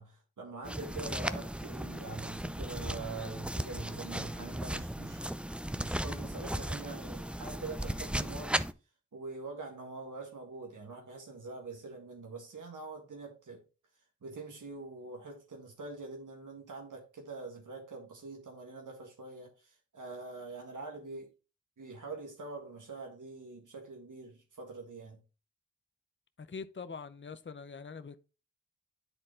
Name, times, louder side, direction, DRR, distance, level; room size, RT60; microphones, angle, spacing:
voice 1, 0.0-5.2 5.7-8.7 9.1-13.6 14.2-21.3 21.8-25.2, right 3 dB, 90° right, 1.7 m, -44 dB
sound 1, 0.6-8.7, right 1 dB, 5° right, 0.5 m, -36 dB
voice 2, 26.4-28.2, left 5 dB, 40° left, 0.7 m, -43 dB
10.0 x 4.2 x 3.7 m
cardioid pair, 50°, 30 cm